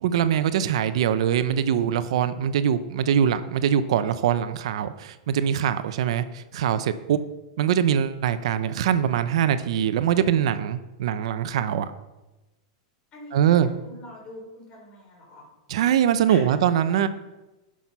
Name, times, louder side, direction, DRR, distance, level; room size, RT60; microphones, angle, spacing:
voice 1, 0.0-7.2 7.6-11.9 13.3-13.7 15.7-17.1, right 9 dB, 70° right, 11 dB, 0.7 m, -23 dB
voice 2, 13.1-15.5 16.3-16.4, left 1 dB, 30° left, -1 dB, 4.0 m, -43 dB
10.0 x 6.2 x 5.5 m, 1.0 s
supercardioid pair, 145°, 3 cm